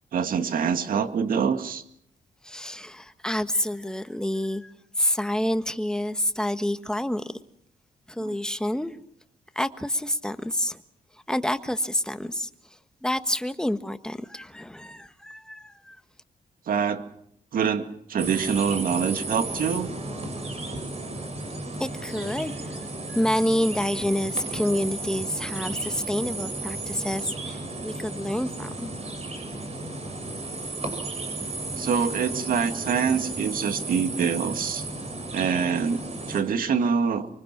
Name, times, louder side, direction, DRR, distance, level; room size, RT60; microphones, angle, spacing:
voice 1, 0.1-1.8 8.2-8.3 16.7-17.0 17.5-19.9 31.8-34.8 35.3-36.0 36.3-37.3, right 6 dB, 75° right, 2.1 m, -25 dB
voice 2, 2.4-7.3 8.1-9.0 9.5-10.8 11.3-12.5 13.0-16.0 21.8-22.8 23.1-29.2, left 1 dB, 5° left, 1.5 m, -28 dB
sound 1, 18.2-36.4, right 2 dB, 45° right, 6.7 m, -34 dB
25.5 x 24.0 x 6.1 m
cardioid pair, 95°, 15 cm